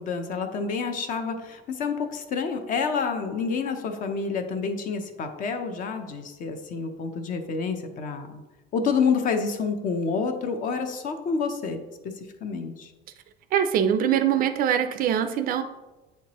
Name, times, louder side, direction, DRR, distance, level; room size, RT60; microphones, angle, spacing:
voice 1, 0.0-8.4 8.7-11.8 12.0-12.1 12.4-12.9, left 5 dB, 40° left, 7 dB, 0.6 m, -28 dB
voice 2, 13.5-15.6, right 9 dB, 45° right, 9 dB, 0.4 m, -23 dB
8.2 x 4.5 x 3.0 m, 1.1 s
cardioid pair, 165°, 21 cm